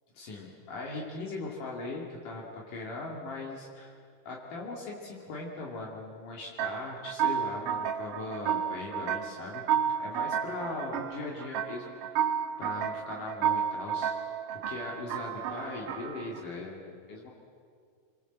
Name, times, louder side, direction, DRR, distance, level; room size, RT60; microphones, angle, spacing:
voice 1, 0.1-3.9 4.3-9.6 10.0-12.3 12.6-14.1 14.5-17.3, left 3 dB, 70° left, -2 dB, 3.9 m, -39 dB
sound 1, 6.6-16.5, right 8 dB, 85° right, 2.6 m, -32 dB
28.0 x 23.5 x 8.0 m, 2.2 s
omnidirectional pair, 3.8 m